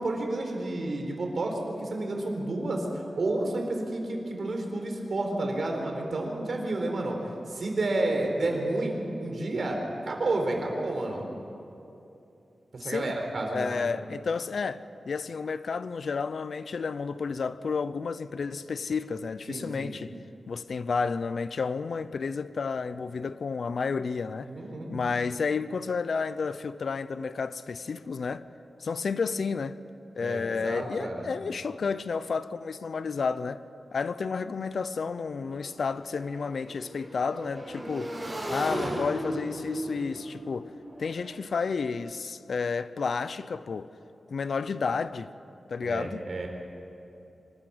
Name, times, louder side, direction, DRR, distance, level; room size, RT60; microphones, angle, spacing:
voice 1, 0.0-7.2 7.5-9.8 10.1-11.3 12.7-13.9 19.5-19.9 24.4-24.9 30.2-31.3 45.8-46.5, right 2 dB, 60° right, 4.1 m, -30 dB
voice 2, 12.8-13.1 13.5-20.1 20.5-24.5 24.9-28.4 28.8-29.8 30.2-33.6 33.9-38.1 38.5-40.7 41.0-43.9 44.3-45.3 45.7-46.2, left 5 dB, 70° left, 0.6 m, -31 dB
Motorcycle / Engine, 34.7-41.8, right 1 dB, 15° right, 6.7 m, -37 dB
25.0 x 13.5 x 9.5 m
wide cardioid pair, 140°, 0 cm